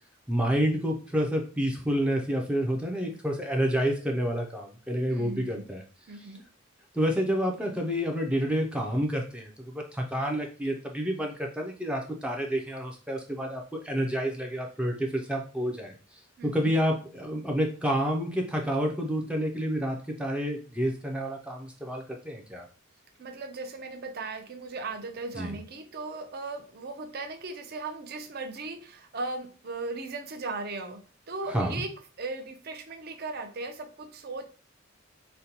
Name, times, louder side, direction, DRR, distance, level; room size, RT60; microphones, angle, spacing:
voice 1, 0.3-5.8 6.9-15.9 16.4-22.6 25.4-25.5 31.5-31.8, equal, 5° right, 1 dB, 0.4 m, -29 dB
voice 2, 5.1-5.7 6.1-6.4 16.4-16.7 23.2-31.0 31.3-31.9 32.2-34.4, right 3 dB, 50° right, 6 dB, 0.6 m, -37 dB
5.1 x 2.2 x 2.8 m, 0.36 s
head